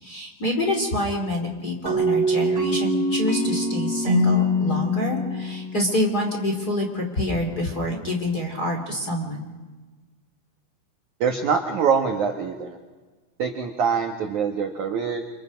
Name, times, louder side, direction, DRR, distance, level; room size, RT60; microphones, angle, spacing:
voice 1, 0.0-9.5, left 1 dB, 25° left, 1 dB, 2.5 m, -26 dB
sound 1, 1.9-6.5, equal, 30° right, 4.0 m, -24 dB
voice 2, 11.2-12.8 13.4-15.2, right 6 dB, 70° right, 3 dB, 1.8 m, -24 dB
29.5 x 26.5 x 5.2 m, 1.3 s
omnidirectional pair, 5.7 m